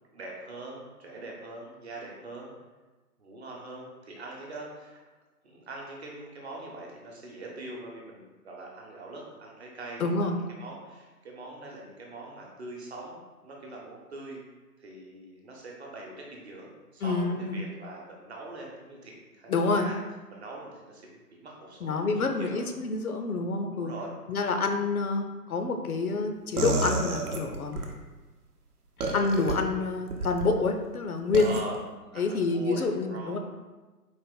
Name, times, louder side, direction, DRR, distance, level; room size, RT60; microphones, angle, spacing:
voice 1, 0.1-2.5 3.2-5.0 5.4-10.3 10.6-13.2 13.4-14.4 14.8-20.0 20.3-22.7 23.7-24.1 31.4-31.8 32.1-33.4, right 2 dB, 45° right, -2 dB, 0.9 m, -43 dB
voice 2, 10.0-10.4 17.0-17.6 19.5-19.9 21.8-23.9 24.3-27.8 29.1-31.6 32.2-33.4, left 3 dB, 65° left, 5 dB, 0.6 m, -27 dB
sound 1, 26.6-27.9 29.0-29.5 30.1-30.5 31.3-31.6, right 2 dB, 70° right, 0.8 m, -29 dB
4.2 x 2.5 x 3.8 m, 1.2 s
figure-of-eight pair, 140°, 47 cm